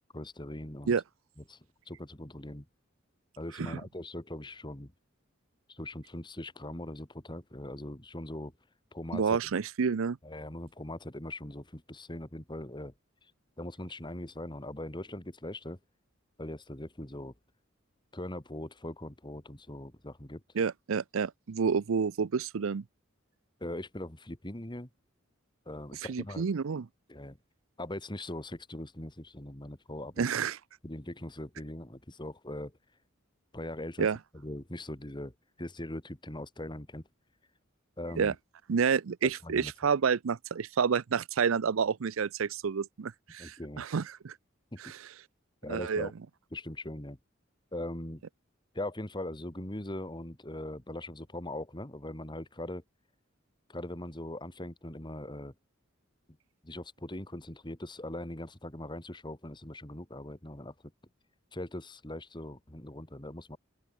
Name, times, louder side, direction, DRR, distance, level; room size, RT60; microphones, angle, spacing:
voice 1, 0.1-1.0 1.4-1.6 1.9-2.7 3.4-4.9 5.7-8.5 8.9-9.4 10.2-12.9 13.6-15.8 16.4-17.3 18.1-20.4 23.6-24.9 25.7-26.5 27.1-27.4 27.8-30.3 30.8-32.7 33.5-34.1 34.3-35.3 35.6-37.0 38.0-38.4 39.2-39.7 43.4-43.8 44.7-44.9 45.6-46.1 46.5-47.2 47.7-48.2 48.7-52.8 53.7-55.5 56.6-60.7 61.5-63.6, left 1 dB, 20° left, 2.2 m, -41 dB
voice 2, 9.1-10.2 20.6-22.8 26.1-26.9 30.2-30.6 34.0-34.2 38.2-38.3 38.7-44.3 44.8-44.9 45.7-46.1, right 6 dB, 80° right, 0.5 m, -29 dB
open air
head